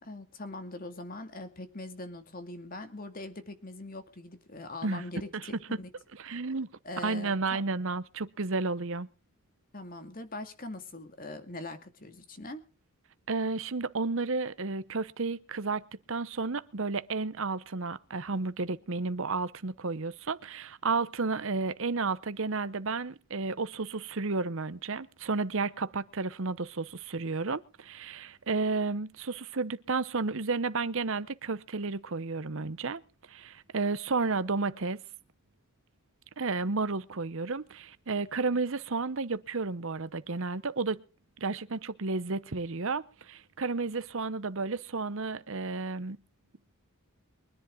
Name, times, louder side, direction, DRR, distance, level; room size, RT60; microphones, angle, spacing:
voice 1, 0.0-5.9 6.8-7.6 9.7-12.6, left 2 dB, 40° left, 2.3 m, -42 dB
voice 2, 6.2-6.7 7.0-9.1 13.3-33.0 33.3-35.0 36.4-41.0 41.4-46.2, right 3 dB, 60° right, 0.9 m, -32 dB
23.5 x 10.5 x 3.8 m
head